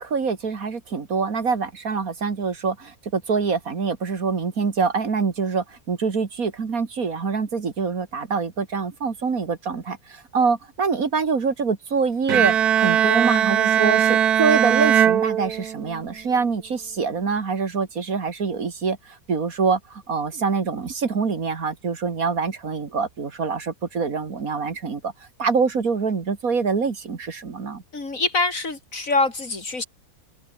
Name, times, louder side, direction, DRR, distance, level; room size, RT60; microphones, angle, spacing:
voice 1, 0.0-25.1 25.4-27.8, right 5 dB, 65° right, 2.5 m, -25 dB
Bowed string instrument, 12.3-16.0, right 9 dB, 80° right, 1.6 m, -19 dB
voice 2, 27.9-29.8, left 3 dB, 60° left, 3.9 m, -24 dB
omnidirectional pair, 1.6 m